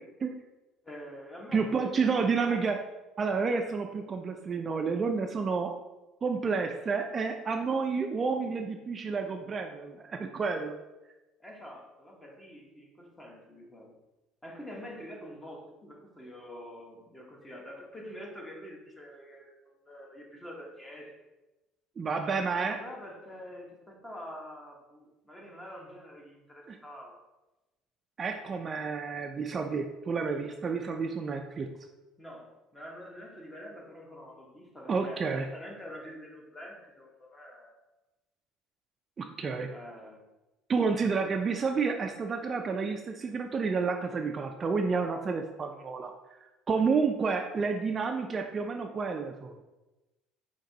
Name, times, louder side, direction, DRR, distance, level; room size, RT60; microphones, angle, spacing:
voice 1, 0.8-2.7 11.4-13.9 14.4-19.5 19.9-21.1 22.2-27.2 32.2-37.8 39.7-40.2, equal, 15° left, -1 dB, 1.1 m, -46 dB
voice 2, 1.5-2.8 3.2-5.7 6.2-10.8 22.0-22.8 26.7-26.8 28.2-31.7 34.9-35.5 39.2-39.7 40.7-46.1 46.7-49.6, right 5 dB, 35° right, 4 dB, 0.3 m, -30 dB
5.1 x 2.9 x 2.7 m, 1.0 s
supercardioid pair, 95°, 0 cm